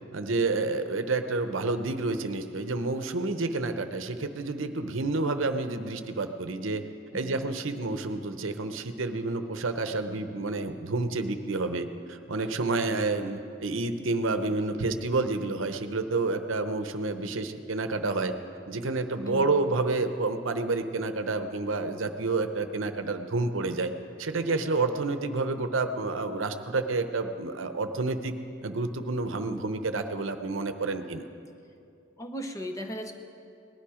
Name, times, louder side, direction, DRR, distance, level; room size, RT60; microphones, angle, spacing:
voice 1, 0.1-6.8 7.1-18.3 18.7-23.9 24.2-28.3 28.6-31.2, right 3 dB, 85° right, 8 dB, 0.8 m, -29 dB
voice 2, 19.2-19.6 32.2-33.1, equal, 15° left, 5 dB, 0.9 m, -36 dB
19.0 x 11.5 x 5.0 m, 2.5 s
head